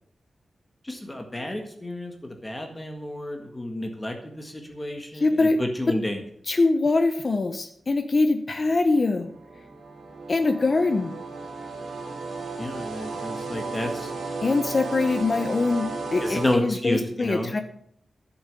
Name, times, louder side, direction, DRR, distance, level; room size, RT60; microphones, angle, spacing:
voice 1, 0.8-6.2 12.6-14.1 16.2-17.5, left 1 dB, 15° left, 4 dB, 1.6 m, -30 dB
voice 2, 5.1-5.6 6.5-9.3 10.3-11.1 14.4-17.6, left 3 dB, 35° left, 7 dB, 0.8 m, -23 dB
sound 1, 8.6-16.6, right 3 dB, 80° right, 3.3 m, -34 dB
12.0 x 7.2 x 6.6 m, 0.68 s
wide cardioid pair, 155°, 0 cm